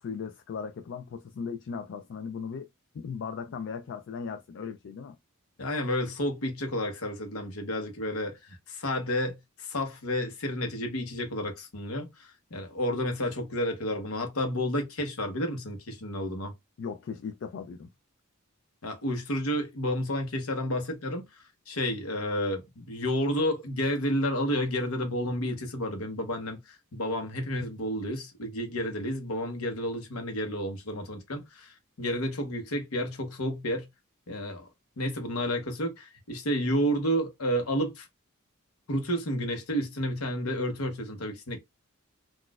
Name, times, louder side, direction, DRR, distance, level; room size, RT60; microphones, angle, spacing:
voice 1, 0.0-2.7 2.9-5.2 16.8-17.9, left 6 dB, 60° left, 0.3 m, -37 dB
voice 2, 5.6-16.5 18.8-33.9 34.3-34.7 35.0-38.1 38.9-41.6, equal, 90° left, 0.9 m, -31 dB
3.9 x 2.4 x 2.3 m
head